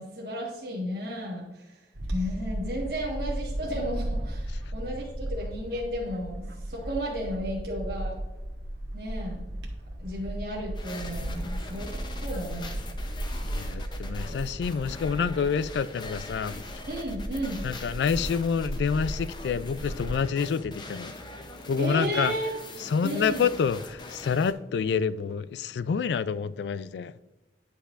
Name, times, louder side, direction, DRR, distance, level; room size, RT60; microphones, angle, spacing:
voice 1, 0.0-1.8 2.1-8.2 8.9-9.4 10.0-11.9 12.2-12.7 16.9-17.6 21.8-22.5 23.0-23.5, equal, 60° right, 1.4 m, -33 dB
Bird / Wind, 1.9-20.2, right 1 dB, 85° right, 1.4 m, -35 dB
sound 1, 10.7-24.5, left 2 dB, 25° left, 0.6 m, -43 dB
voice 2, 13.4-16.6 17.6-21.1 21.7-22.3 22.8-27.1, left 6 dB, 75° left, 0.3 m, -28 dB
9.9 x 5.5 x 2.5 m
head